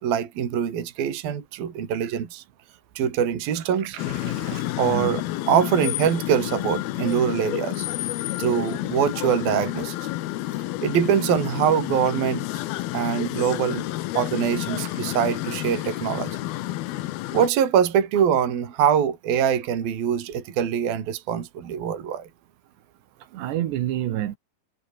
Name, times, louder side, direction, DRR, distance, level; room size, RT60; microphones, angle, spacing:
voice 1, 0.0-2.4 3.0-4.0 4.8-7.9 8.4-10.0 10.8-12.5 12.9-13.9 14.1-16.4 17.3-22.3, right 8 dB, 55° right, 4.4 m, -23 dB
voice 2, 3.8-5.2 14.8-14.9 23.3-24.4, right 12 dB, 70° right, 3.6 m, -30 dB
sound 1, 4.0-17.5, left 16 dB, 75° left, 2.4 m, -30 dB
omnidirectional pair, 5.4 m